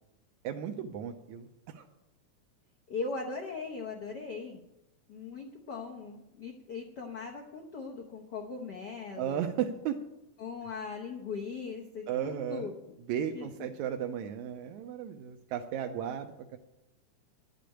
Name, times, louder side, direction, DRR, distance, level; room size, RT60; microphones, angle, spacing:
voice 1, 0.4-1.9 9.2-10.0 12.1-12.7 13.1-16.6, right 9 dB, 85° right, 4 dB, 2.0 m, -35 dB
voice 2, 2.9-4.6 5.1-9.5 10.4-12.7 13.3-13.5, left 4 dB, 80° left, 1 dB, 0.9 m, -39 dB
11.0 x 6.8 x 9.0 m, 0.91 s
omnidirectional pair, 3.3 m